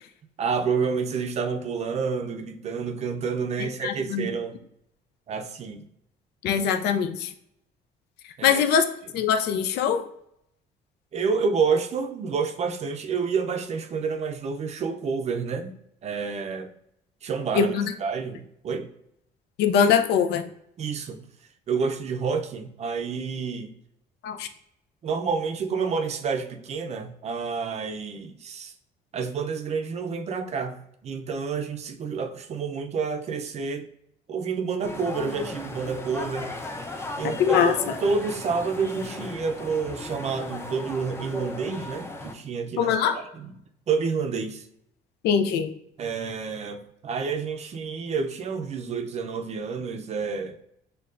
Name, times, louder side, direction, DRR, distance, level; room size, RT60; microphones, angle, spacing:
voice 1, 0.4-4.6 5.3-5.9 8.4-8.6 11.1-15.8 16.0-16.7 17.2-18.9 20.8-21.2 21.7-23.7 25.0-28.7 29.1-33.9 34.3-36.5 37.2-43.5 43.9-44.7 46.0-50.6, right 5 dB, 40° right, 0.5 m, -29 dB
voice 2, 3.6-4.3 6.4-7.3 8.4-8.8 9.1-10.0 17.5-17.9 19.6-20.4 24.2-24.5 37.4-37.7 42.8-43.2 45.2-45.7, left 7 dB, 75° left, 0.5 m, -22 dB
sound 1, 34.8-42.3, left 2 dB, 15° left, 0.5 m, -36 dB
6.4 x 2.3 x 2.5 m
cardioid pair, 110°, 17 cm